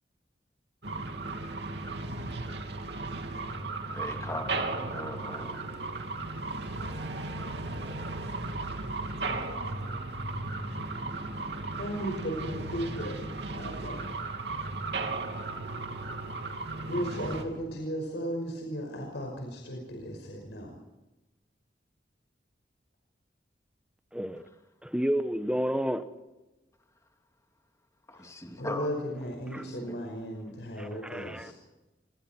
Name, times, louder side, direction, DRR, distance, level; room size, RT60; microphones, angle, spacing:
sound 1, 0.8-17.4, right 3 dB, 65° right, 3.1 m, -35 dB
voice 1, 3.8-5.6 28.1-28.9 29.5-29.9, left 1 dB, 20° left, 3 dB, 2.8 m, -39 dB
voice 2, 11.7-14.2 16.9-20.8 28.1-28.3 28.6-31.5, equal, 75° left, 1 dB, 5.6 m, -36 dB
voice 3, 24.1-24.4 24.8-26.0 29.5-29.6 30.8-31.5, equal, 5° right, 9 dB, 1.3 m, -30 dB
28.0 x 24.5 x 4.6 m, 1.0 s
head